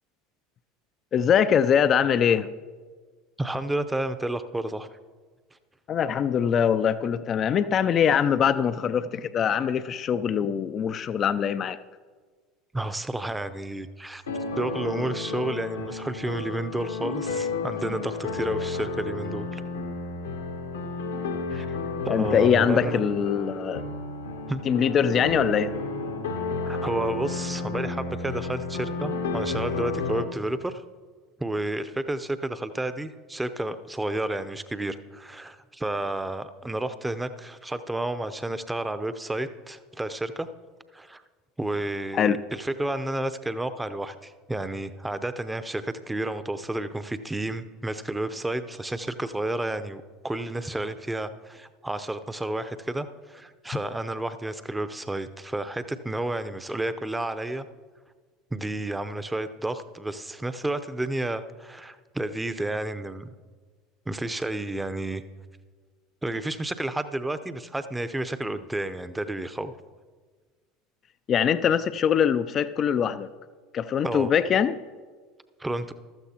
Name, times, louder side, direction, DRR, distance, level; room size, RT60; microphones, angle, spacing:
voice 1, 1.1-2.5 5.9-11.8 22.1-23.8 24.7-25.7 42.1-42.4 71.3-73.3 73.7-74.8, left 8 dB, 40° left, 14 dB, 0.4 m, -23 dB
voice 2, 3.4-4.9 12.7-14.2 14.6-19.6 21.5-21.7 22.0-23.0 24.5-24.6 26.7-30.8 31.4-40.5 40.9-41.2 41.6-57.7 58.5-63.3 64.1-65.2 66.2-69.7 74.0-74.3 75.6-75.9, right 1 dB, 10° right, 11 dB, 0.7 m, -31 dB
sound 1, 14.3-30.2, left 3 dB, 80° left, 1.3 m, -32 dB
15.0 x 13.0 x 2.9 m, 1.5 s
figure-of-eight pair, 75°, 0 cm